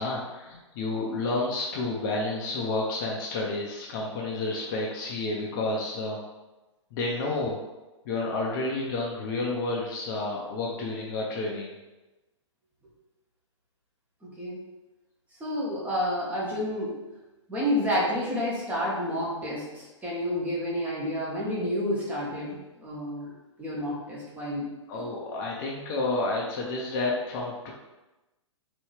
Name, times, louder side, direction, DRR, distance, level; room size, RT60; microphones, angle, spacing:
voice 1, 0.0-6.2 6.9-7.6 8.0-11.7 24.9-27.7, left 2 dB, 40° left, -2 dB, 0.8 m, -30 dB
voice 2, 14.2-14.6 15.4-17.0 17.5-23.3 23.6-24.7, equal, 10° right, -7 dB, 1.3 m, -30 dB
4.3 x 3.1 x 3.3 m, 1.1 s
figure-of-eight pair, 110°, 16 cm